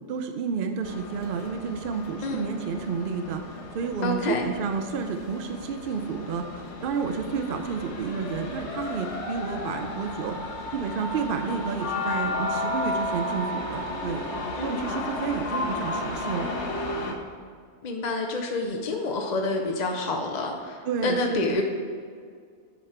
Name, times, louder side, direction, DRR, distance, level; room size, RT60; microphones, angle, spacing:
voice 1, 0.0-14.2 14.6-16.6 20.8-21.6, right 5 dB, 60° right, 6 dB, 0.6 m, -31 dB
sound 1, 0.8-17.1, left 2 dB, 65° left, 1.4 m, -33 dB
voice 2, 4.0-4.5 14.6-15.0 17.8-21.6, left 3 dB, 45° left, 2 dB, 0.7 m, -28 dB
10.0 x 5.2 x 4.3 m, 2.1 s
omnidirectional pair, 1.3 m